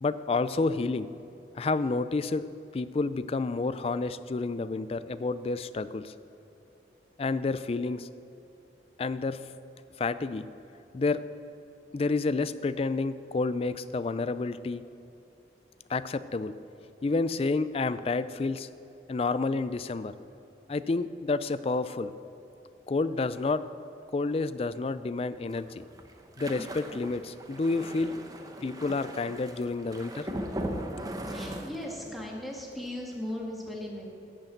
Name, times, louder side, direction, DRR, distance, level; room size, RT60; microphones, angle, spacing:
voice 1, 0.0-1.1 1.6-2.5 2.7-6.1 7.2-8.1 9.0-9.4 10.0-10.5 10.9-11.2 11.9-14.8 15.9-16.5 17.0-18.7 19.1-20.1 20.7-22.1 22.9-23.6 24.1-25.9 26.4-28.1 28.6-30.3, left 3 dB, 35° left, 14 dB, 0.3 m, -29 dB
sound 1, 25.5-32.3 32.6-32.9 33.1-33.3, right 1 dB, 20° right, 0.8 m, -39 dB
voice 2, 29.5-34.1, left 1 dB, ahead, -2 dB, 1.8 m, -40 dB
11.5 x 7.0 x 7.9 m, 2.9 s
head